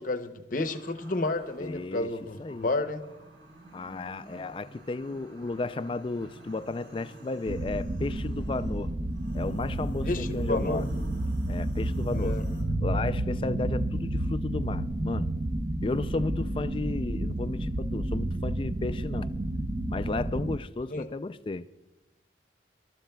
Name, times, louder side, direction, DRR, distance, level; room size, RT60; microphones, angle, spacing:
voice 1, 0.0-3.0 10.0-10.8 12.1-12.5 20.9-21.1, left 2 dB, 50° left, 0.8 m, -31 dB
sound 1, 0.6-12.6, right 1 dB, 75° right, 3.0 m, -50 dB
voice 2, 1.6-2.1 2.4-2.7 3.7-8.9 9.3-10.9 11.5-12.4 12.8-15.3 15.8-19.3 19.9-21.7, left 3 dB, 30° left, 0.3 m, -33 dB
sound 2, 7.5-20.6, right 1 dB, 35° right, 0.5 m, -30 dB
26.5 x 13.0 x 2.3 m
head